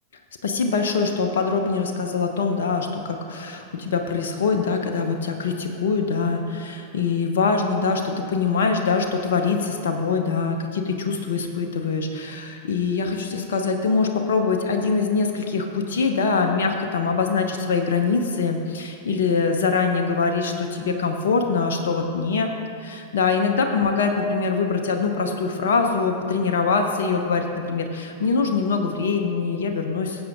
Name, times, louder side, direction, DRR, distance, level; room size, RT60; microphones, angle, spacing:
voice 1, 0.4-22.5 22.8-30.3, left 4 dB, 60° left, 4 dB, 0.7 m, -23 dB
16.0 x 7.9 x 2.5 m, 2.4 s
figure-of-eight pair, 90°, 0 cm